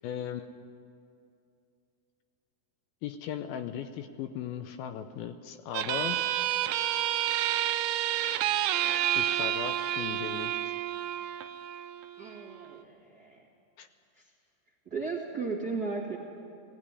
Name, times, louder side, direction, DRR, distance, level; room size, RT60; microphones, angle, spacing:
voice 1, 0.0-0.5 3.0-6.2 9.1-10.6 13.8-13.9, left 9 dB, 80° left, 8 dB, 2.4 m, -37 dB
sound 1, 5.7-12.8, right 12 dB, 80° right, 2.4 m, -30 dB
voice 2, 12.2-13.4 14.2-14.3 14.9-16.2, right 4 dB, 35° right, -3 dB, 1.8 m, -35 dB
19.0 x 16.5 x 9.7 m, 2.5 s
omnidirectional pair, 4.7 m